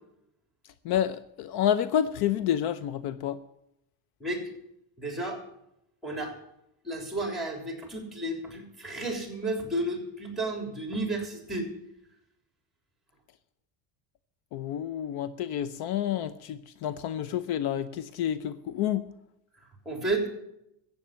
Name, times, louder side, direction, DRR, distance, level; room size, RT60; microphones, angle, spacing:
voice 1, 0.8-3.4 14.5-19.1, left 10 dB, 60° left, 0.7 m, -29 dB
voice 2, 4.2-4.5 5.0-5.4 6.0-6.3 6.8-11.7 19.9-20.3, right 2 dB, ahead, 3.5 m, -32 dB
14.5 x 8.1 x 7.5 m
cardioid pair, 140°, 42 cm